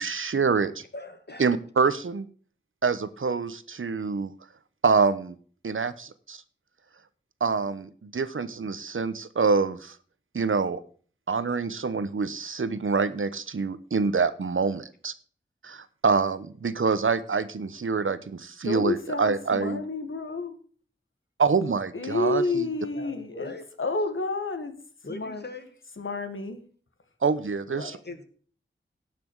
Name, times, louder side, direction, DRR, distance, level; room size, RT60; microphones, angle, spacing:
voice 1, 0.0-0.8 1.4-2.3 2.8-4.3 4.8-5.4 5.6-6.4 7.4-9.9 10.3-10.8 11.3-15.1 15.6-19.8 21.4-22.7 27.2-27.8, right 5 dB, 80° right, 14 dB, 0.9 m, -26 dB
voice 2, 0.9-1.5 22.9-23.7 25.0-25.8 27.7-28.2, left 2 dB, 55° left, 7 dB, 2.1 m, -41 dB
voice 3, 18.6-20.5 21.9-23.5 23.8-24.8 25.1-25.4 26.0-26.6, left 3 dB, 80° left, 8 dB, 1.7 m, -29 dB
17.5 x 6.1 x 4.6 m, 0.44 s
wide cardioid pair, 60°, 20 cm